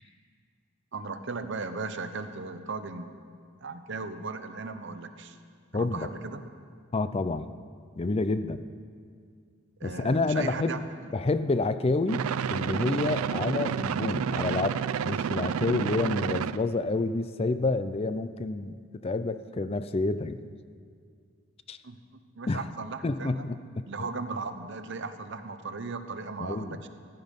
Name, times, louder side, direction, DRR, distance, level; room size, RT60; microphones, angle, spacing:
voice 1, 0.9-3.1 3.6-5.4 5.7-6.4 9.8-11.1 21.8-23.5 23.8-26.9, right 3 dB, 55° right, 9 dB, 0.9 m, -37 dB
voice 2, 6.9-7.5 8.0-8.7 9.8-10.8 11.1-12.2 12.5-18.8 19.0-20.4 21.7-21.8 22.5-22.6 23.0-23.8 26.4-26.8, left 3 dB, 30° left, 12 dB, 0.4 m, -28 dB
sound 1, 12.1-16.6, right 7 dB, 85° right, 0.4 m, -30 dB
15.0 x 12.0 x 5.4 m, 2.1 s
head